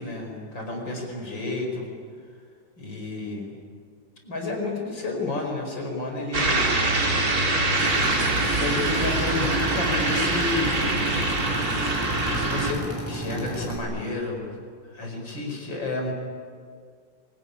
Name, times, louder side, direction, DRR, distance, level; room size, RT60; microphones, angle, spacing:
voice 1, 0.0-1.9 2.8-3.5 4.2-6.7 8.3-11.0 12.2-14.6 14.9-16.1, left 3 dB, 60° left, 1 dB, 5.7 m, -31 dB
sound 1, 6.3-12.7, right 2 dB, 45° right, 3.4 m, -24 dB
Drill, 7.8-13.8, right 1 dB, 5° right, 5.3 m, -33 dB
24.0 x 20.0 x 10.0 m, 2.1 s
omnidirectional pair, 2.3 m